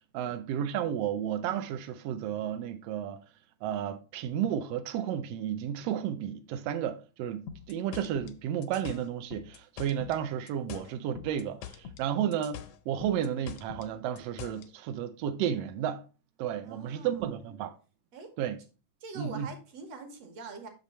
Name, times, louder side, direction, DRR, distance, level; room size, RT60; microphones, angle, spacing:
voice 1, 0.1-3.2 3.6-16.0 16.4-17.8 18.4-18.6 19.1-19.5, right 9 dB, 80° right, 1.4 m, -32 dB
sound 1, 7.5-10.2 10.5-12.1 12.3-14.7, left 9 dB, 80° left, 1.4 m, -44 dB
voice 2, 16.6-17.2 18.1-18.3 19.0-20.7, right 3 dB, 60° right, 2.3 m, -44 dB
6.2 x 5.3 x 4.2 m
omnidirectional pair, 3.5 m